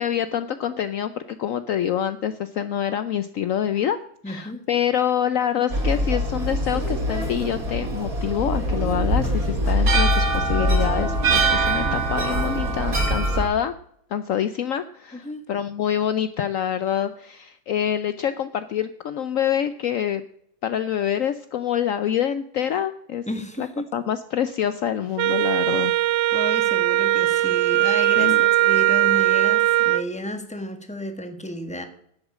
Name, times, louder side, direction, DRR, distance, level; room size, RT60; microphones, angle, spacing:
voice 1, 0.0-4.0 4.3-13.7 14.1-20.2 20.6-23.2 23.6-23.7 23.9-25.9 28.2-28.4, left 9 dB, 75° left, 12 dB, 0.7 m, -26 dB
voice 2, 4.2-4.7 15.1-15.4 23.3-23.9 26.3-31.9, equal, 5° left, 6 dB, 1.3 m, -32 dB
sound 1, 5.7-13.4, right 1 dB, 45° right, 3.3 m, -23 dB
Wind instrument woodwind instrument, 25.2-30.1, right 16 dB, 75° right, 1.2 m, -20 dB
11.0 x 8.1 x 7.3 m, 0.70 s
omnidirectional pair, 2.1 m